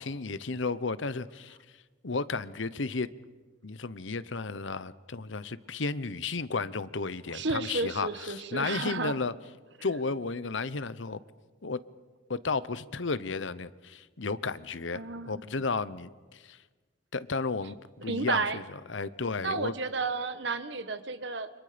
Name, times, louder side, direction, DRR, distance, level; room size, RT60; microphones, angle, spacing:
voice 1, 0.0-1.6 2.0-3.1 3.6-9.3 9.8-11.2 11.6-11.8 12.3-16.6 17.1-17.8 18.0-18.6 18.9-19.7, left 4 dB, 75° left, 15 dB, 0.9 m, -33 dB
voice 2, 7.3-9.2 14.9-15.6 18.1-18.6 19.4-21.5, right 3 dB, 65° right, 11 dB, 1.4 m, -32 dB
29.5 x 26.5 x 5.2 m, 1.3 s
head